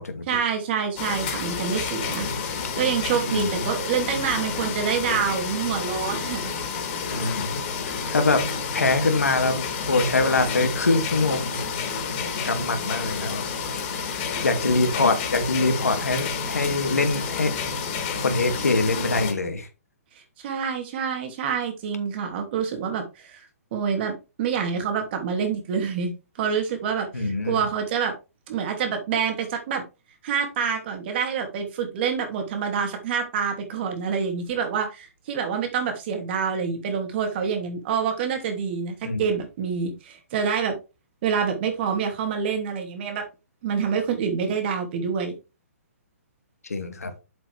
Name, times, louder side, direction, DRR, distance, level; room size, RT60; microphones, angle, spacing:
voice 1, 0.3-6.6 20.4-23.4 23.7-26.1 26.4-28.1 28.5-29.8 30.2-40.7 41.2-43.3 43.6-45.3, right 6 dB, 45° right, 2.9 m, -27 dB
sound 1, 1.0-19.3, left 5 dB, 40° left, 3.2 m, -30 dB
voice 2, 3.3-3.7 7.1-7.5 7.9-8.5 8.7-11.6 12.4-13.4 13.7-13.8 14.4-17.5 18.1-19.7 27.1-27.6 39.0-39.2 46.7-47.1, left 3 dB, 85° left, 2.4 m, -24 dB
7.8 x 7.6 x 3.4 m
hypercardioid pair, 135°, 8 cm